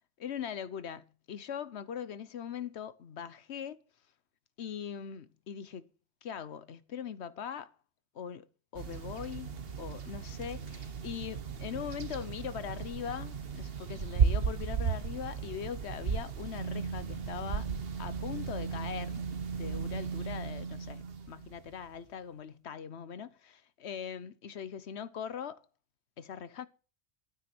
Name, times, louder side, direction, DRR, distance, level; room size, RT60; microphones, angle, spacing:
voice 1, 0.2-3.8 4.6-5.8 6.2-7.7 8.1-8.4 8.7-9.5 9.8-17.7 18.0-19.2 19.5-25.6 26.2-26.7, left 8 dB, 70° left, 1.2 m, -41 dB
sound 1, 8.7-21.8, right 6 dB, 60° right, 1.3 m, -35 dB
12.5 x 8.9 x 6.0 m
omnidirectional pair, 1.2 m